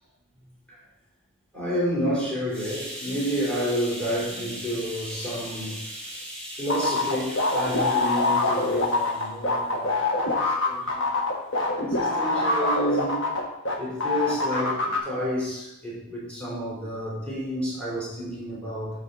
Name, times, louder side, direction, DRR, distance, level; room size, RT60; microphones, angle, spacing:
voice 1, 1.5-9.9 10.6-11.1 11.8-13.3 13.8-19.0, equal, 5° left, -7 dB, 4.0 m, -30 dB
sound 1, 6.7-13.7 14.0-15.0, left 2 dB, 65° left, 1.6 m, -24 dB
14.0 x 5.1 x 4.2 m, 0.89 s
head